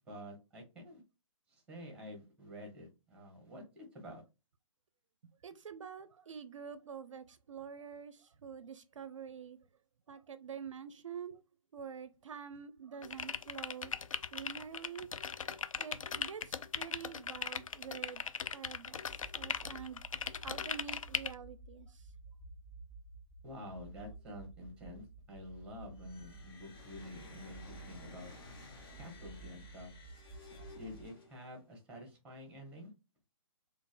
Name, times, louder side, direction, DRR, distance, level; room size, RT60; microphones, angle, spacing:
voice 1, 0.1-1.0 1.5-4.2 23.4-27.6 27.9-28.3 29.0-29.9 30.7-32.9, left 1 dB, 5° right, 1.2 m, -49 dB
voice 2, 5.4-9.6 10.1-11.4 11.7-13.9 14.3-15.1 15.8-20.0 20.4-22.1, right 7 dB, 65° right, 0.4 m, -47 dB
sound 1, 13.0-21.3, left 6 dB, 75° left, 0.4 m, -39 dB
sound 2, 19.1-31.1, right 3 dB, 30° left, 1.5 m, -53 dB
sound 3, 25.9-31.6, left 2 dB, 45° left, 1.1 m, -55 dB
3.9 x 2.4 x 2.4 m
figure-of-eight pair, 140°, 17 cm